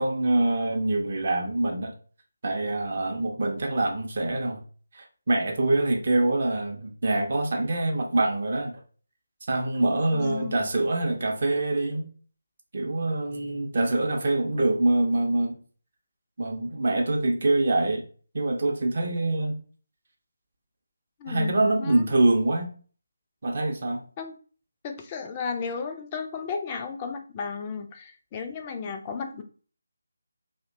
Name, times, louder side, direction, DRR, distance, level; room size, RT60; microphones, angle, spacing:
voice 1, 0.0-1.9 2.4-4.6 4.9-8.8 9.5-12.1 12.7-15.6 16.4-18.1 18.3-19.6 21.3-22.7 23.4-24.0, right 2 dB, 45° right, 1 dB, 0.5 m, -25 dB
voice 2, 10.1-10.6 21.2-22.1 24.2-24.4 24.8-29.4, left 5 dB, 20° left, 4 dB, 0.3 m, -34 dB
2.6 x 2.1 x 2.5 m, 0.39 s
figure-of-eight pair, 155°, 0 cm